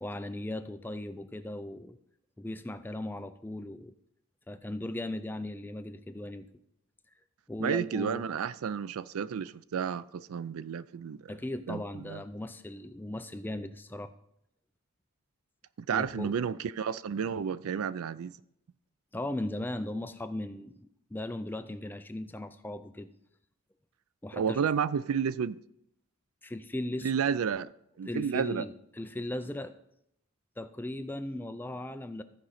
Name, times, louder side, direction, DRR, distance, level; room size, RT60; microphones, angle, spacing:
voice 1, 0.0-2.0 2.4-3.9 4.5-6.5 7.5-8.3 11.3-14.1 15.9-16.3 19.1-23.1 24.2-24.6 26.4-27.1 28.0-29.7 30.6-32.2, left 1 dB, 10° left, 0.3 m, -37 dB
voice 2, 7.6-11.3 11.7-12.2 15.9-18.3 24.3-25.6 27.0-27.7 28.0-28.7, right 7 dB, 75° right, 0.4 m, -31 dB
13.5 x 5.1 x 5.8 m
head